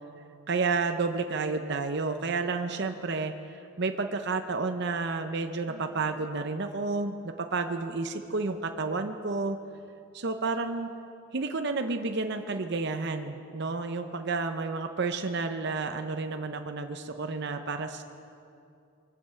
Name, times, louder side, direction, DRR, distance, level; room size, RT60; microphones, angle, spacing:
voice 1, 0.5-3.3 3.8-9.6 10.1-10.9 11.3-18.0, right 3 dB, 50° right, 6 dB, 0.7 m, -31 dB
Sigh, 5.5-6.1, right 1 dB, 70° right, 2.4 m, -52 dB
23.0 x 7.8 x 7.8 m, 2.6 s
head